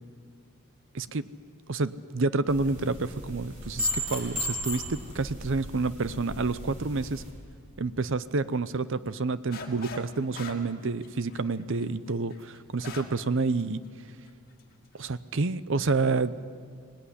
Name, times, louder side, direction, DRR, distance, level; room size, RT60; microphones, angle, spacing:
voice 1, 1.7-7.2 7.8-13.8 14.9-16.3, right 3 dB, 60° right, 15 dB, 0.7 m, -29 dB
sound 1, 2.5-7.3, left 1 dB, 35° right, 6.3 m, -35 dB
sound 2, 9.5-10.1 10.3-13.2 13.6-13.7 14.3-14.6, left 3 dB, 45° left, 2.3 m, -42 dB
24.5 x 18.5 x 9.9 m, 2.1 s
head